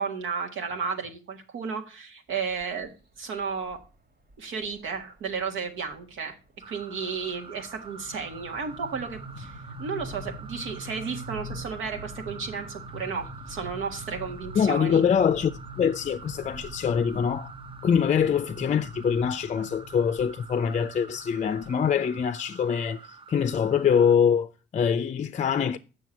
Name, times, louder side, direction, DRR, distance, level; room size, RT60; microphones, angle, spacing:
voice 1, 0.0-3.8 4.4-6.4 6.7-15.0, right 5 dB, 80° right, 1.8 m, -33 dB
sound 1, 2.6-2.9 3.7-3.8 4.2-4.3 4.6-4.9 5.3-21.7, equal, 50° right, 2.1 m, -43 dB
sound 2, 6.6-24.2, right 5 dB, 25° right, 0.6 m, -47 dB
voice 2, 14.6-17.5 17.8-25.8, left 7 dB, 35° left, 0.5 m, -24 dB
7.4 x 6.2 x 6.1 m
cardioid pair, 90°, 20 cm